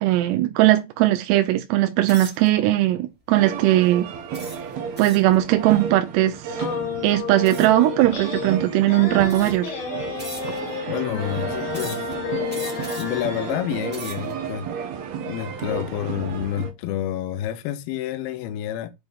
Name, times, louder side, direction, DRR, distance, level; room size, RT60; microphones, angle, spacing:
voice 1, 0.0-4.1 5.0-6.6 7.0-9.7, right 15 dB, 90° right, 2.8 m, -19 dB
sound 1, 2.0-2.5 3.1-3.4 4.3-5.3 7.4-7.8 8.7-8.8 9.2-9.7 10.2-10.8 11.7-12.1 12.5-13.2 13.7-14.3, right 1 dB, 5° right, 0.8 m, -39 dB
sound 2, 3.3-16.7, right 7 dB, 65° right, 1.8 m, -32 dB
sound 3, 6.6-13.6, left 7 dB, 50° left, 2.4 m, -32 dB
voice 2, 10.9-12.1 13.0-14.7 15.2-18.9, left 11 dB, 75° left, 2.6 m, -29 dB
8.1 x 4.1 x 3.5 m
omnidirectional pair, 4.8 m